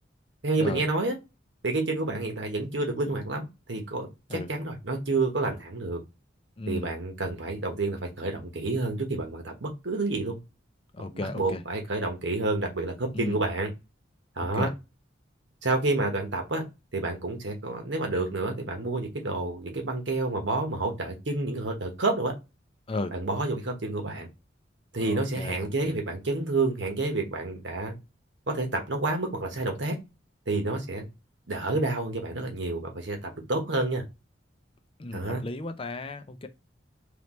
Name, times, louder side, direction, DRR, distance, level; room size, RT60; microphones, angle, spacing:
voice 1, 0.4-1.1 1.6-6.0 6.7-10.4 11.1-13.7 14.4-14.7 15.6-16.6 16.9-22.3 23.1-24.3 24.9-27.9 28.5-29.9 30.5-31.1 31.5-34.0 35.1-35.4, right 2 dB, 75° right, 1.2 m, -29 dB
voice 2, 6.6-6.9 10.9-11.6 13.1-13.4 14.4-14.7 22.9-23.1 25.0-25.9 35.0-36.5, left 2 dB, 30° left, 0.5 m, -35 dB
3.9 x 3.3 x 3.0 m
head